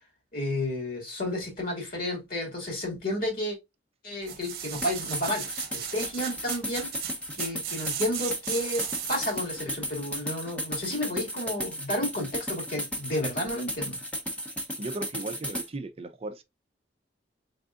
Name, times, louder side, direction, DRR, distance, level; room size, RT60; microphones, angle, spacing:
voice 1, 0.3-3.6 4.0-6.9 7.3-14.0, left 1 dB, 55° left, 2.3 m, -32 dB
sound 1, 4.2-9.5 9.9-10.0, right 9 dB, 55° right, 0.8 m, -36 dB
sound 2, 4.8-15.7, equal, 10° left, 0.8 m, -34 dB
voice 2, 14.8-16.4, right 2 dB, 35° right, 0.5 m, -36 dB
3.9 x 3.5 x 2.4 m
head